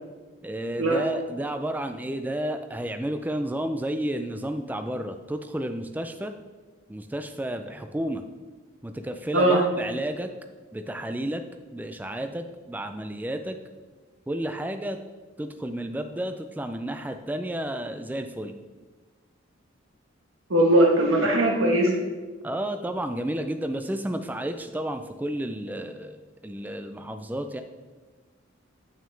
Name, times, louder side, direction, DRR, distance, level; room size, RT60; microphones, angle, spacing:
voice 1, 0.4-6.3 6.9-8.2 8.8-10.3 10.7-11.4 11.7-13.6 14.3-15.0 15.4-18.5 21.2-21.4 22.4-27.6, right 1 dB, 10° right, 7 dB, 0.3 m, -31 dB
voice 2, 9.3-9.6 20.5-21.9, right 1 dB, 85° right, 1 dB, 1.3 m, -20 dB
8.8 x 6.1 x 3.3 m, 1.3 s
head